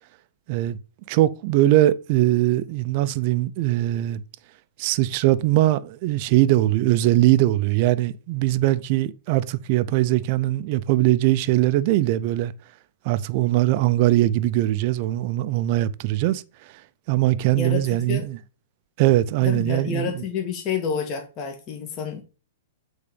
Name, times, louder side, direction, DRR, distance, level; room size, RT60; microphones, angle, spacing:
voice 1, 1.1-4.2 4.8-12.5 13.0-16.7 17.1-18.4 19.0-20.2, right 15 dB, 40° right, 0.6 m, -21 dB
voice 2, 17.5-18.3 19.4-22.2, left 6 dB, 30° left, 1.7 m, -29 dB
8.7 x 3.9 x 5.1 m
hypercardioid pair, 155°, 0 cm